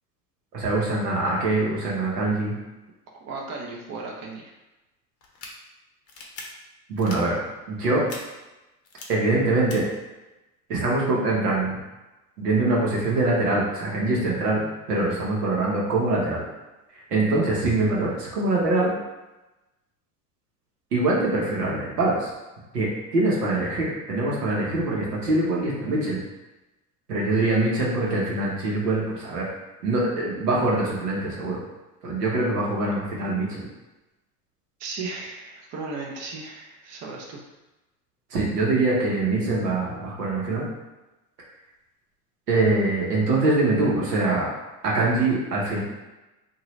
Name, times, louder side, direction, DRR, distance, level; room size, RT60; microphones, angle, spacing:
voice 1, 0.5-2.5 6.9-7.4 7.7-8.0 9.1-9.8 10.7-11.7 12.4-16.4 17.1-18.9 20.9-22.3 22.7-26.2 27.1-29.5 29.8-31.6 32.0-33.7 38.3-40.7 42.5-44.5 44.8-45.8, right 2 dB, 90° right, -4 dB, 1.1 m, -23 dB
voice 2, 3.2-4.5 34.8-37.4, right 3 dB, 35° right, 0 dB, 0.6 m, -35 dB
sound 1, 5.2-5.5 6.1-6.4 7.0-7.2 8.1-8.2 8.8-9.0 9.7-9.8, left 4 dB, 35° left, 0.7 m, -40 dB
2.8 x 2.5 x 3.1 m, 1.0 s
hypercardioid pair, 90°, 46 cm